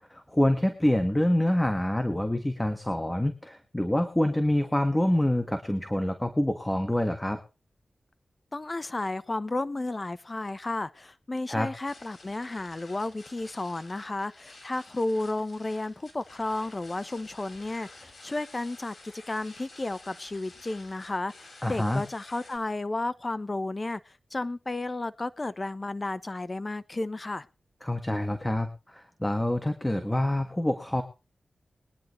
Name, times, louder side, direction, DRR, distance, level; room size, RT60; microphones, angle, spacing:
voice 1, 0.1-7.4 11.5-11.7 21.6-22.0 27.8-31.0, left 1 dB, 10° left, 1.7 m, -26 dB
voice 2, 8.5-24.0 24.3-27.5, left 2 dB, 35° left, 0.9 m, -33 dB
sound 1, 11.8-22.6, left 2 dB, 55° left, 5.7 m, -51 dB
21.5 x 10.5 x 3.2 m
cardioid pair, 60°, 0 cm